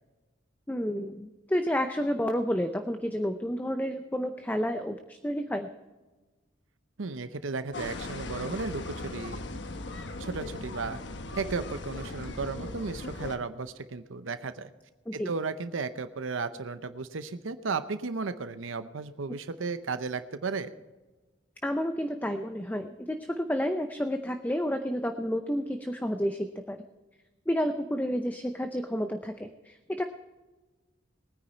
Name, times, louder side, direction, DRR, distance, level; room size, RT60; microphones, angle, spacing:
voice 1, 0.7-5.7 15.1-15.3 21.6-26.8 27.5-30.0, equal, 10° left, 7 dB, 0.6 m, -30 dB
voice 2, 7.0-9.4 10.2-11.0 11.3-14.7 15.1-20.7, right 4 dB, 85° right, 11 dB, 0.7 m, -34 dB
sound 1, 7.7-13.4, left 2 dB, 65° left, 1.1 m, -38 dB
20.5 x 9.8 x 4.4 m, 1.2 s
head